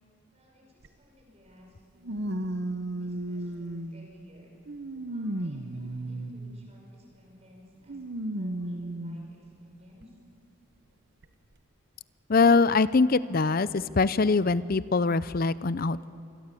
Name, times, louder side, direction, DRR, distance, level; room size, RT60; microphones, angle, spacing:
voice 1, 0.3-4.5 5.1-10.2, left 1 dB, 30° right, 0 dB, 5.5 m, -56 dB
sound 1, 0.8-0.9 2.0-4.1 4.7-6.7 7.9-9.3 10.0-10.1 11.2-11.3, right 1 dB, 50° right, 0.9 m, -34 dB
voice 2, 12.3-16.1, left 4 dB, 40° left, 16 dB, 0.5 m, -23 dB
26.5 x 25.5 x 8.4 m, 2.7 s
head